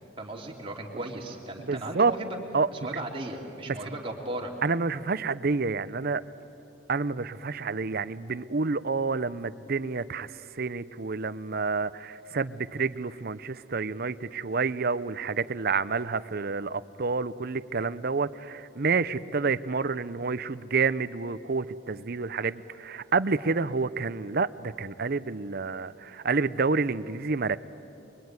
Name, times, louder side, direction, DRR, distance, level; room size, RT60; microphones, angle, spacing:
voice 1, 0.2-2.4 2.7-4.5, right 1 dB, 25° right, 0 dB, 3.0 m, -36 dB
voice 2, 1.7-2.1 2.5-2.7 3.7-3.8 4.6-6.2 6.9-10.3 10.6-27.6, right 4 dB, 50° right, 15 dB, 0.7 m, -28 dB
24.5 x 23.0 x 9.6 m, 2.9 s
head